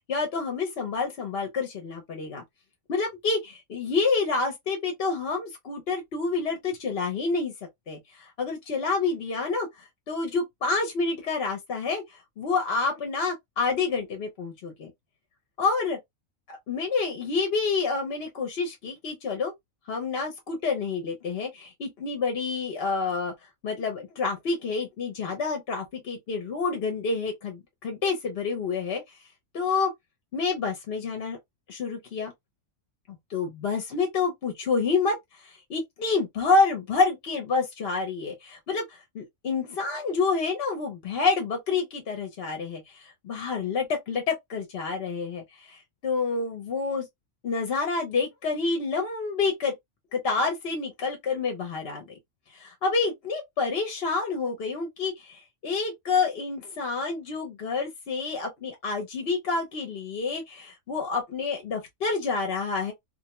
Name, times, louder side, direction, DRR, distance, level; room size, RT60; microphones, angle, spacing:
voice 1, 0.1-2.4 2.9-7.5 7.9-9.7 10.1-12.0 12.4-14.9 15.6-16.0 16.5-19.5 19.9-23.3 23.6-29.0 29.5-29.9 30.3-31.4 31.7-32.3 33.3-35.2 35.4-47.1 47.4-49.7 50.1-52.2 52.5-62.9, left 4 dB, 55° left, 0.8 m, -28 dB
2.5 x 2.1 x 2.8 m
omnidirectional pair, 1.4 m